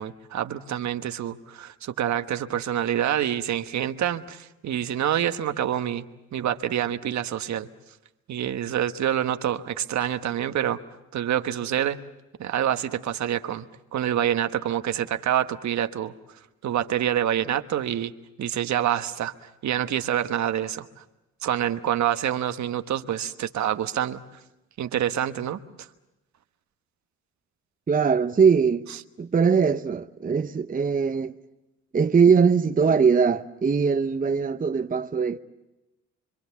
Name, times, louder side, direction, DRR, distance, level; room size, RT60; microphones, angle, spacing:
voice 1, 0.0-6.1 6.3-7.7 8.3-10.8 11.1-12.0 12.4-16.1 16.6-18.1 18.4-19.3 19.6-21.0 21.4-24.2 24.8-25.9, right 10 dB, 60° right, 1.3 m, -27 dB
voice 2, 27.9-28.9 29.2-31.3 31.9-35.4, right 6 dB, 25° right, 0.8 m, -21 dB
26.0 x 25.0 x 7.1 m
supercardioid pair, 70°, 32 cm